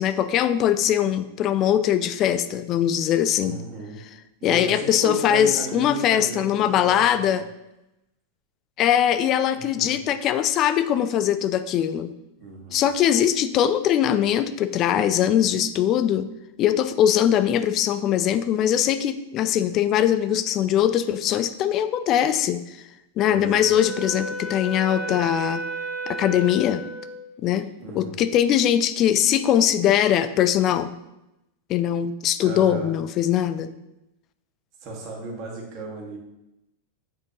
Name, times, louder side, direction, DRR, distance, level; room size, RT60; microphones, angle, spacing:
voice 1, 0.0-3.6 4.4-7.4 8.8-12.1 12.7-16.3 16.6-22.6 23.2-25.6 26.1-26.8 27.4-27.7 27.9-30.9 31.7-33.7, left 10 dB, 35° left, 12 dB, 0.4 m, -21 dB
voice 2, 3.4-4.0 4.4-7.4 9.5-10.0 12.4-12.9 23.2-23.7 27.8-28.2 32.4-32.9 34.8-36.2, right 2 dB, 40° right, -2 dB, 1.8 m, -35 dB
Wind instrument woodwind instrument, 23.2-27.2, right 2 dB, 5° left, 1.7 m, -33 dB
7.7 x 4.4 x 2.9 m, 0.90 s
figure-of-eight pair, 90°, 0 cm